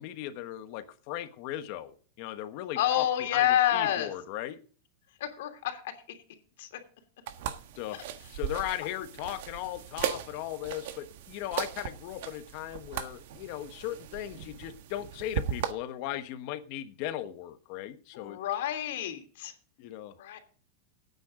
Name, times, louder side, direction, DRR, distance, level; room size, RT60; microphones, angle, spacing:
voice 1, 0.0-4.6 7.8-8.0 8.3-18.4 19.8-20.1, left 13 dB, 40° left, 11 dB, 1.2 m, -37 dB
voice 2, 2.8-4.1 5.2-5.8 6.6-6.7 18.1-19.5 20.2-20.4, left 11 dB, 70° left, 6 dB, 2.8 m, -28 dB
sound 1, 7.3-15.7, right 10 dB, 60° right, 1.4 m, -38 dB
16.5 x 9.3 x 3.8 m, 0.40 s
supercardioid pair, 175°, 0 cm